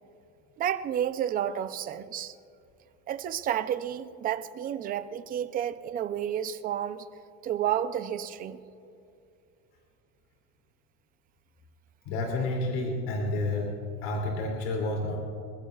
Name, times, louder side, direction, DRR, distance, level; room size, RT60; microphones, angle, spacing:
voice 1, 0.6-2.3 3.1-7.1 7.4-8.6, right 10 dB, 25° right, 11 dB, 0.5 m, -31 dB
voice 2, 12.1-13.7 14.0-15.2, left 2 dB, 60° left, -1 dB, 2.9 m, -30 dB
29.0 x 15.5 x 2.4 m, 2.6 s
cardioid pair, 175°, 32 cm